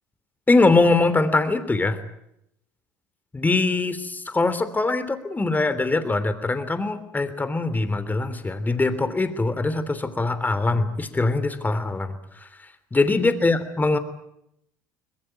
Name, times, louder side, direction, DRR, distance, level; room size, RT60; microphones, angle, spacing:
voice 1, 0.5-2.0 3.3-12.1 12.9-14.0, left 3 dB, 20° left, 11 dB, 3.2 m, -22 dB
22.5 x 21.5 x 9.1 m, 0.77 s
hypercardioid pair, 65°, 10 cm